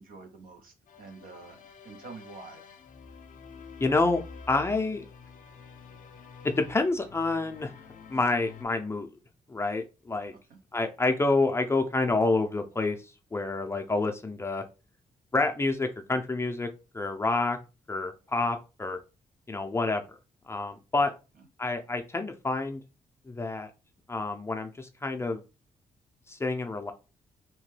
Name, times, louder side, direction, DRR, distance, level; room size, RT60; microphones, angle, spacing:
voice 1, 0.0-2.7 10.5-10.6 21.4-21.5, right 4 dB, 80° right, 6 dB, 0.7 m, -47 dB
sound 1, 0.9-8.6, left 5 dB, 65° left, 0.5 m, -48 dB
voice 2, 3.8-4.2 4.5-5.1 6.4-7.7 8.1-9.2 9.5-10.3 10.7-14.6 15.3-16.7 16.9-17.6 17.9-19.0 19.5-20.0 20.5-21.1 21.6-22.8 23.2-23.7 24.1-25.4 26.3-26.9, left 3 dB, 20° left, 5 dB, 0.4 m, -28 dB
2.9 x 2.2 x 3.1 m, 0.30 s
cardioid pair, 95°, 15 cm